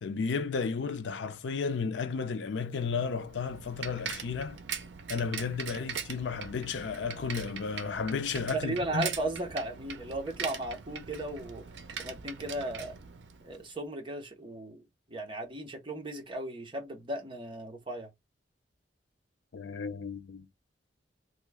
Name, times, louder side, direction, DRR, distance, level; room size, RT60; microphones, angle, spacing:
voice 1, 0.0-4.6 5.1-9.1 19.5-20.4, left 5 dB, 75° left, 0.5 m, -33 dB
Bicycle, 2.8-13.7, right 6 dB, 70° right, 0.5 m, -41 dB
voice 2, 8.5-11.6 12.0-12.9 13.4-14.8 15.1-18.1, right 2 dB, 30° right, 0.9 m, -36 dB
3.0 x 2.2 x 3.4 m
head